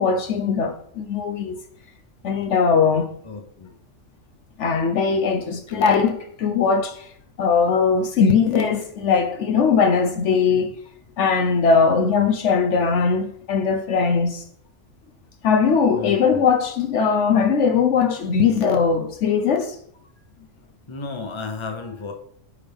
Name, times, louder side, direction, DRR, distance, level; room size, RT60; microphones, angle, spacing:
voice 1, 0.0-1.6 2.2-3.1 4.6-7.1 7.4-10.8 11.2-14.4 15.4-19.8, left 5 dB, 70° left, 1.0 m, -20 dB
voice 2, 3.2-3.8 15.9-16.5 20.9-22.1, left 4 dB, 25° left, 1.0 m, -33 dB
9.5 x 5.1 x 3.5 m
omnidirectional pair, 1.3 m